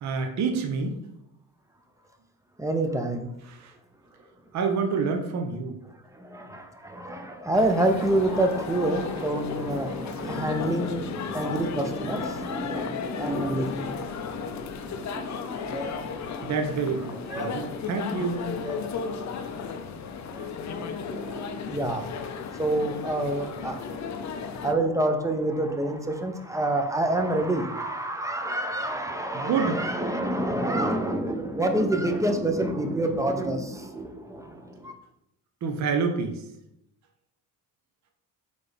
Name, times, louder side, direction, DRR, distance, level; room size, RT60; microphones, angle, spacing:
voice 1, 0.0-1.0 3.5-3.7 4.5-5.8 16.4-18.5 29.3-29.8 35.6-36.4, right 5 dB, 55° right, 4 dB, 0.7 m, -28 dB
voice 2, 2.6-3.3 6.1-16.5 17.3-17.8 18.6-18.8 20.3-22.1 22.6-34.9, right 1 dB, 10° right, 5 dB, 0.5 m, -28 dB
sound 1, 7.5-24.7, left 6 dB, 50° left, 0.5 m, -35 dB
4.2 x 3.2 x 3.3 m, 0.81 s
cardioid pair, 90°, 35 cm